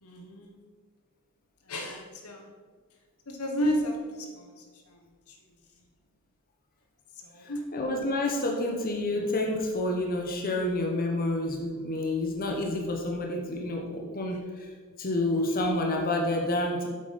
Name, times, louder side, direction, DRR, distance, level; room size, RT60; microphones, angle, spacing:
voice 1, 0.0-0.5 1.7-2.5 3.3-4.5 7.3-7.6, equal, 80° left, 3 dB, 1.4 m, -31 dB
voice 2, 7.7-14.7 15.0-16.9, left 1 dB, 40° left, 1 dB, 1.3 m, -29 dB
8.1 x 7.8 x 5.3 m, 1.5 s
head